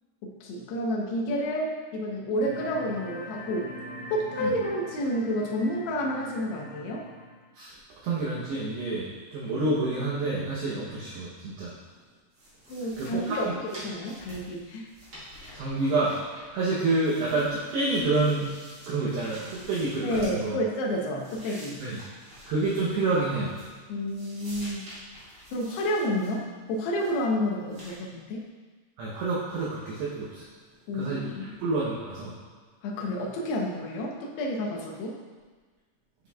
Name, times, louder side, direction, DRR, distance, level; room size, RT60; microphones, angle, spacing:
voice 1, 0.2-3.7 4.1-7.1 12.7-14.9 20.0-21.8 23.9-24.9 25.5-28.5 30.9-31.5 32.8-35.2, equal, 75° left, -1 dB, 2.6 m, -30 dB
sound 1, 2.4-7.5, equal, 55° left, 3.3 m, -42 dB
voice 2, 8.0-11.7 13.0-13.5 15.5-18.5 18.9-20.6 21.8-22.0 22.5-23.5 29.0-30.4 31.0-32.3, right 2 dB, 75° right, -7 dB, 2.7 m, -28 dB
sound 2, 12.3-16.6 16.9-20.5 20.9-23.8 24.1-26.3 26.7-27.2 27.7-28.0, equal, 45° right, 1.6 m, -48 dB
10.0 x 4.6 x 2.3 m, 1.5 s
omnidirectional pair, 5.3 m